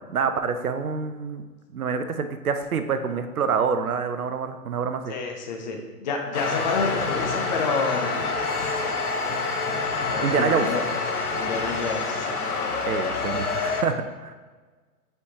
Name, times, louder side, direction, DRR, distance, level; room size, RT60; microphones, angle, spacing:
voice 1, 0.1-1.4 1.7-5.1 10.2-10.7 12.9-14.3, right 6 dB, 70° right, 9 dB, 0.7 m, -26 dB
voice 2, 5.1-8.4 10.1-10.8 11.3-12.4, left 4 dB, 30° left, 2 dB, 0.7 m, -29 dB
sound 1, 6.3-13.8, left 4 dB, 70° left, 1.1 m, -27 dB
8.2 x 4.5 x 2.8 m, 1.4 s
figure-of-eight pair, 125°, 46 cm